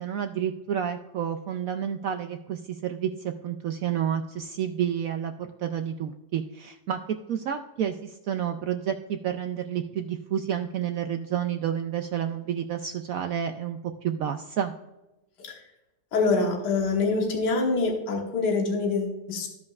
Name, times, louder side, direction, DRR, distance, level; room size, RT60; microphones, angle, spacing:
voice 1, 0.0-14.7, right 9 dB, 85° right, 6 dB, 0.7 m, -30 dB
voice 2, 16.1-19.5, left 3 dB, 65° left, 1 dB, 1.8 m, -25 dB
14.5 x 5.3 x 2.3 m, 1.0 s
omnidirectional pair, 2.0 m